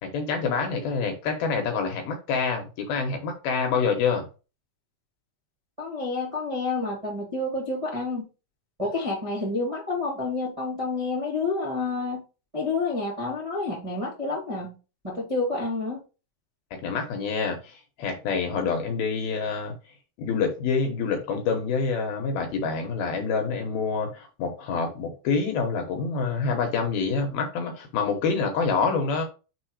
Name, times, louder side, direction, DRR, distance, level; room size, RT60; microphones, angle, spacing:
voice 1, 0.0-4.3 16.8-19.7 20.2-29.3, left 5 dB, 70° left, 2.5 m, -27 dB
voice 2, 5.8-8.2 8.8-12.2 12.5-14.7 15.0-16.0, left 3 dB, 65° right, 0.3 m, -29 dB
6.8 x 3.6 x 4.8 m
omnidirectional pair, 5.4 m